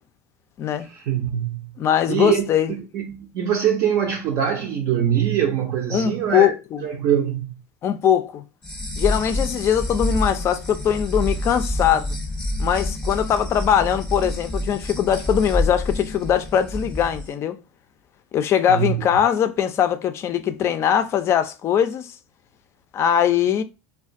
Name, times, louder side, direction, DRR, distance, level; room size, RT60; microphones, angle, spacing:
voice 1, 0.9-1.7 2.1-2.4 2.9-6.5 6.8-7.6 18.7-19.0, right 9 dB, 55° right, 0.5 m, -23 dB
voice 2, 1.8-2.7 5.9-6.8 7.8-8.4 9.0-12.2 12.6-17.6 18.3-22.1 22.9-23.6, left 9 dB, 40° left, 0.4 m, -21 dB
sound 1, 8.6-17.3, left 1 dB, 5° left, 0.7 m, -27 dB
2.4 x 2.2 x 2.5 m
hypercardioid pair, 100°, 7 cm